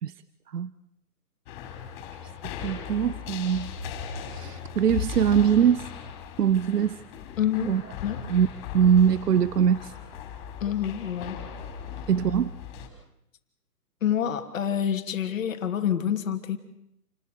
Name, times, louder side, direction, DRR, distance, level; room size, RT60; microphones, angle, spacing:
sound 1, 1.5-12.9, left 6 dB, 30° left, 5.4 m, -37 dB
voice 1, 2.6-3.7 4.3-5.9 6.4-7.0 7.7-7.8 8.3-8.5 8.7-9.9 12.1-12.5, right 8 dB, 80° right, 17 dB, 1.0 m, -22 dB
voice 2, 7.4-7.7 8.0-8.2 10.6-11.4 14.0-16.6, left 9 dB, 55° left, 7 dB, 2.9 m, -27 dB
29.0 x 20.5 x 6.7 m, 0.80 s
hypercardioid pair, 150°, 47 cm